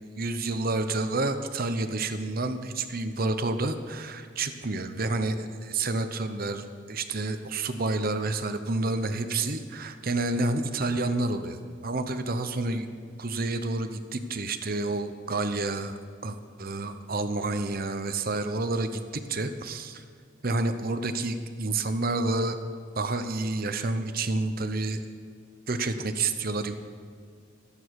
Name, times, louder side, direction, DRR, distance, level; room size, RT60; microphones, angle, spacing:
voice 1, 0.2-11.6 11.8-12.9 13.2-15.9 16.2-20.0 20.4-22.6 23.0-25.0 25.7-26.7, right 2 dB, 50° right, 9 dB, 0.9 m, -29 dB
25.0 x 8.7 x 4.8 m, 2.1 s
head